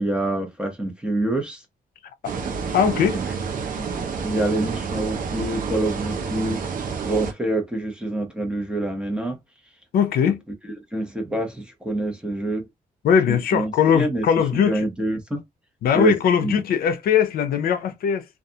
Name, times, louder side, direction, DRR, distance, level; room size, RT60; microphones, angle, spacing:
voice 1, 0.0-1.6 3.1-3.2 3.8-6.6 7.0-9.4 10.2-10.3 10.6-12.7 13.3-14.3 14.6-15.4 15.9-16.1 16.4-16.6, right 1 dB, 5° right, 0.8 m, -26 dB
sound 1, 2.2-7.3, right 5 dB, 65° right, 0.7 m, -29 dB
voice 2, 2.7-3.2 9.9-10.4 13.0-14.8 15.8-18.2, left 7 dB, 80° left, 0.5 m, -20 dB
2.4 x 2.3 x 2.7 m
cardioid pair, 135°, 15 cm